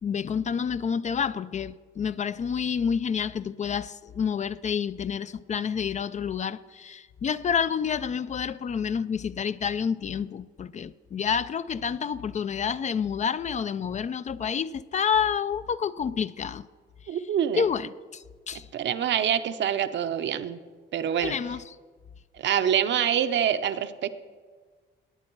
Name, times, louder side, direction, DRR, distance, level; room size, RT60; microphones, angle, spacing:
voice 1, 0.0-16.7 17.6-18.7 21.2-21.6, left 7 dB, 35° left, 0.4 m, -29 dB
voice 2, 17.1-17.6 18.7-20.6 20.9-21.4 22.4-24.1, right 9 dB, 65° right, 0.7 m, -25 dB
19.0 x 8.6 x 4.6 m
cardioid pair, 90°, 20 cm